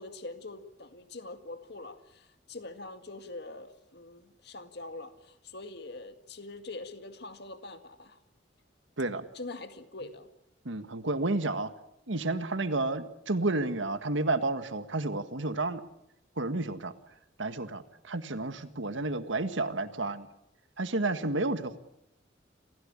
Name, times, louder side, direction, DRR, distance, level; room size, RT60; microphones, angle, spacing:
voice 1, 0.0-8.2 9.3-10.3, left 2 dB, 60° left, 8 dB, 2.0 m, -44 dB
voice 2, 10.7-11.7 12.1-15.8 16.4-16.9 17.4-20.3 20.8-21.8, right 2 dB, 85° right, 10 dB, 1.7 m, -31 dB
28.0 x 16.0 x 8.8 m, 0.80 s
head